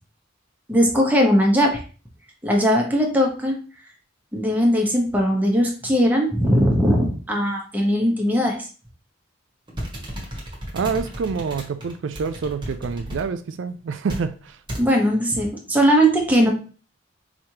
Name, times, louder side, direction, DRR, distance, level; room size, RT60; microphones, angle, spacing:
voice 1, 0.7-1.8 2.4-3.5 4.3-8.6 14.8-16.5, equal, 10° right, 0 dB, 1.0 m, -19 dB
sound 1, 9.7-13.3 14.1-14.3 14.7-14.9, equal, 25° right, 1.3 m, -33 dB
voice 2, 10.7-14.6, right 5 dB, 80° right, 10 dB, 0.4 m, -27 dB
4.9 x 3.1 x 2.9 m, 0.37 s
head